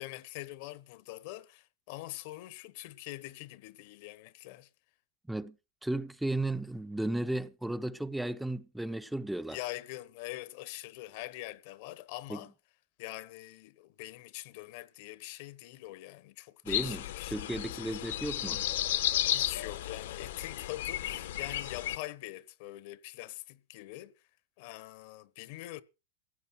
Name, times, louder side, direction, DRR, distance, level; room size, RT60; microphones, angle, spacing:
voice 1, 0.0-4.7 9.5-12.5 13.0-17.9 19.2-24.1 24.6-25.8, left 17 dB, 60° left, 1.1 m, -44 dB
voice 2, 5.8-9.6 12.3-12.4 16.6-18.6, right 1 dB, 5° right, 0.7 m, -34 dB
sound 1, 16.7-22.0, left 13 dB, 80° left, 1.2 m, -33 dB
16.5 x 8.3 x 6.0 m
supercardioid pair, 125°, 0 cm